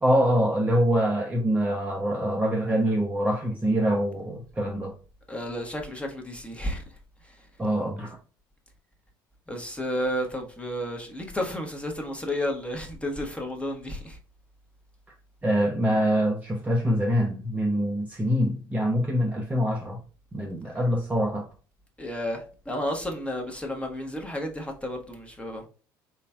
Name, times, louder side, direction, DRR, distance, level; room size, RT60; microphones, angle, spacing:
voice 1, 0.0-4.9 7.6-8.2 15.4-20.0 20.3-21.5, equal, 15° right, 0.8 m, -24 dB
voice 2, 5.3-6.8 7.3-7.4 9.5-14.2 22.0-25.7, equal, 10° left, 1.1 m, -32 dB
4.0 x 3.2 x 2.3 m
hypercardioid pair, 65°, 11 cm